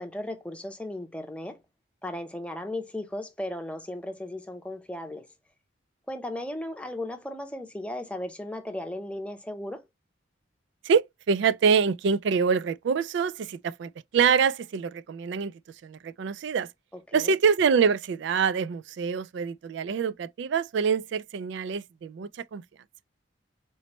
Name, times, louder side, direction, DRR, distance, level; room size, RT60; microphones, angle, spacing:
voice 1, 0.0-1.6 2.0-5.3 6.1-9.8 17.1-17.3, left 1 dB, 5° left, 0.7 m, -36 dB
voice 2, 10.8-15.5 15.8-16.7 17.1-22.6, right 6 dB, 60° right, 0.3 m, -25 dB
4.2 x 3.0 x 3.0 m
head